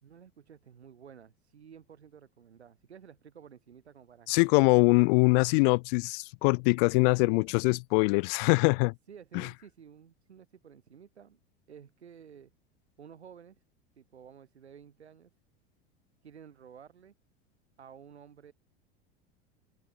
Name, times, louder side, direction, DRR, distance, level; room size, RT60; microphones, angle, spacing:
voice 1, 0.0-4.6 7.2-7.5 9.1-11.4 11.7-12.5 13.0-13.6 14.0-15.3 16.2-17.1 17.8-18.5, right 8 dB, 85° right, 3.5 m, -52 dB
voice 2, 4.3-8.9 9.3-9.5, left 32 dB, 55° left, 0.5 m, -23 dB
open air
hypercardioid pair, 85°, 32 cm